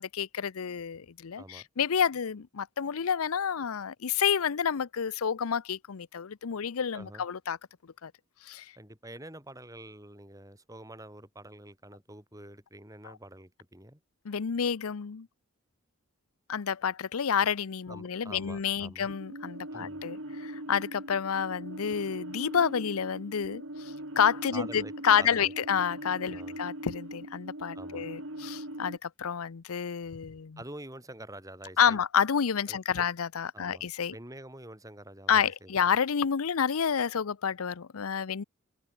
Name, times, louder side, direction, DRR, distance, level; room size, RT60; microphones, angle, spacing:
voice 1, 0.0-7.6 8.0-8.1 8.4-8.7 14.2-15.3 16.5-30.6 31.8-34.1 35.3-38.4, left 7 dB, 85° left, 0.6 m, -29 dB
voice 2, 1.4-1.7 6.9-7.2 8.8-14.0 17.9-19.1 19.7-20.0 24.5-25.5 26.3-26.6 27.7-28.1 30.6-32.0 32.7-33.1 33.5-33.9 34.1-35.8, right 1 dB, 15° right, 4.3 m, -47 dB
sound 1, 19.1-29.0, right 1 dB, 65° right, 5.8 m, -41 dB
head